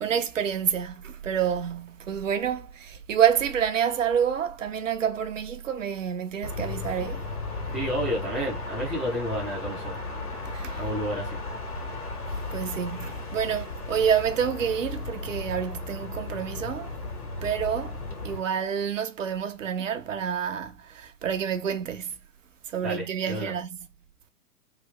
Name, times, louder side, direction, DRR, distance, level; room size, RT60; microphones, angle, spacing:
voice 1, 0.0-7.2 10.5-10.8 12.5-16.9 17.4-18.0 18.2-22.1 22.7-23.8, right 8 dB, 55° right, 0.8 m, -28 dB
sound 1, 6.4-18.4, left 3 dB, 70° left, 1.6 m, -35 dB
voice 2, 7.7-9.9 10.8-11.4 22.8-23.5, equal, ahead, 0.5 m, -31 dB
3.3 x 2.6 x 3.5 m
figure-of-eight pair, 115°, 46 cm